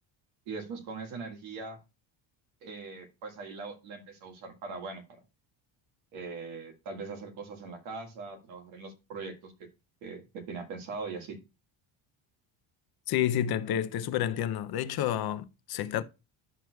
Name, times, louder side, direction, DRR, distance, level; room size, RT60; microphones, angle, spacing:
voice 1, 0.5-1.8 2.6-5.2 6.1-9.5 10.0-11.4, right 4 dB, 80° right, 1.8 m, -41 dB
voice 2, 13.1-16.0, left 11 dB, 55° left, 0.5 m, -29 dB
10.5 x 6.1 x 2.2 m
cardioid pair, 155°, 47 cm